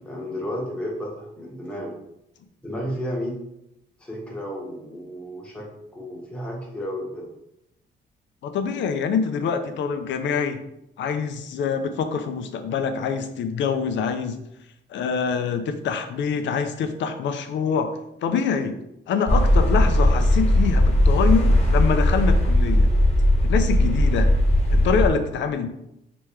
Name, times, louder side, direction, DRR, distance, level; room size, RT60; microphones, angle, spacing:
voice 1, 0.0-1.9 2.6-3.4 4.0-7.3, equal, 5° left, -3 dB, 1.0 m, -32 dB
voice 2, 8.4-10.6 11.0-14.4 14.9-17.9 18.2-18.8 19.1-22.9 23.4-24.3 24.7-25.7, left 6 dB, 65° left, 8 dB, 0.5 m, -25 dB
sound 1, 19.3-25.1, left 1 dB, 30° left, 1.1 m, -18 dB
3.1 x 3.0 x 3.4 m, 0.83 s
cardioid pair, 90°, 20 cm